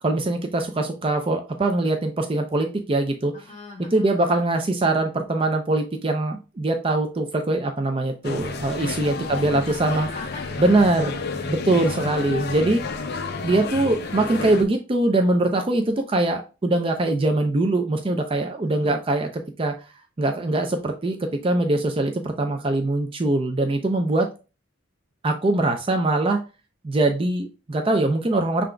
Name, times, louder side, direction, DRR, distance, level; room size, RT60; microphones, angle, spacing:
voice 1, 0.0-3.3 3.9-10.1 10.6-11.1 11.5-12.8 13.4-19.7 20.2-24.3 25.2-26.4 26.8-28.6, right 2 dB, 30° right, 4 dB, 0.5 m, -22 dB
voice 2, 3.3-4.2 9.2-11.2 18.6-18.9, left 2 dB, 35° left, -2 dB, 2.1 m, -42 dB
sound 1, 8.2-14.6, left 4 dB, 55° left, 0.6 m, -31 dB
5.8 x 3.8 x 2.2 m, 0.31 s
head